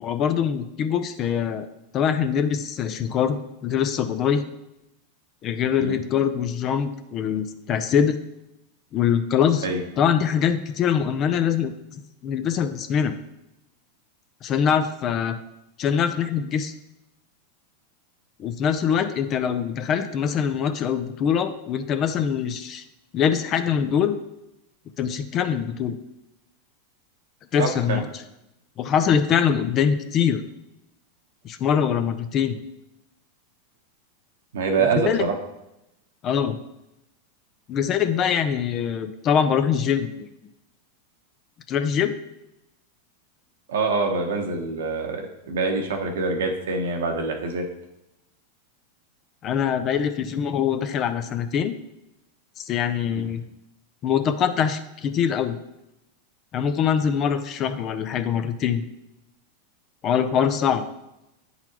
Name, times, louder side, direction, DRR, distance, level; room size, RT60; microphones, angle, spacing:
voice 1, 0.0-1.7 1.9-4.4 5.4-8.2 8.9-9.7 10.0-11.7 12.2-13.2 14.4-15.4 15.8-16.7 18.4-22.8 23.1-24.2 25.0-26.0 27.5-28.0 28.8-30.4 31.4-32.6 34.8-35.3 36.2-36.6 37.7-40.1 41.7-42.2 49.4-51.7 52.6-53.4 54.0-55.6 56.5-58.8 60.0-60.9, left 8 dB, 40° left, 9 dB, 0.6 m, -23 dB
voice 2, 27.6-28.0 34.5-35.3 43.7-47.7 53.1-53.2, right 4 dB, 80° right, 3 dB, 1.0 m, -25 dB
8.9 x 4.0 x 3.0 m, 0.89 s
hypercardioid pair, 115°, 0 cm